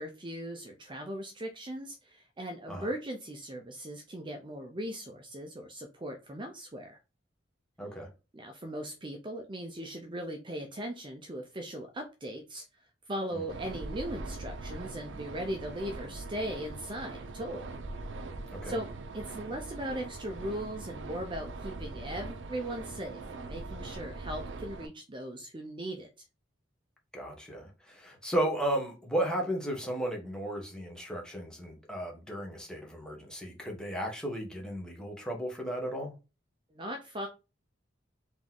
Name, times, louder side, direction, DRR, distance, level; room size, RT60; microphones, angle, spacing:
voice 1, 0.0-7.0 8.3-12.6 13.1-17.7 18.6-18.9 19.1-26.1 36.7-37.3, right 1 dB, 25° right, 0.6 m, -38 dB
voice 2, 7.8-8.1 13.3-13.4 18.5-18.7 27.1-36.1, right 1 dB, 5° left, 1.2 m, -34 dB
sound 1, 13.5-24.9, right 3 dB, 70° right, 0.6 m, -41 dB
3.9 x 3.0 x 3.8 m
head